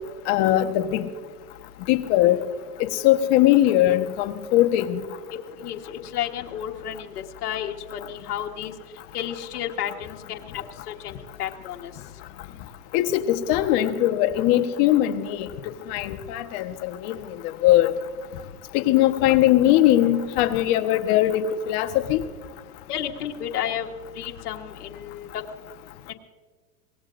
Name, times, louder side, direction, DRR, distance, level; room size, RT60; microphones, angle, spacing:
voice 1, 0.3-1.1 1.9-2.4 2.8-5.0 12.9-15.5 15.9-17.2 17.6-17.9 18.7-22.2, left 13 dB, 40° left, 1.1 m, -20 dB
voice 2, 5.6-8.7 9.1-11.9 22.9-23.9 24.1-25.4 26.1-26.2, left 10 dB, 75° left, 1.5 m, -32 dB
23.5 x 18.5 x 2.6 m
supercardioid pair, 140°, 46 cm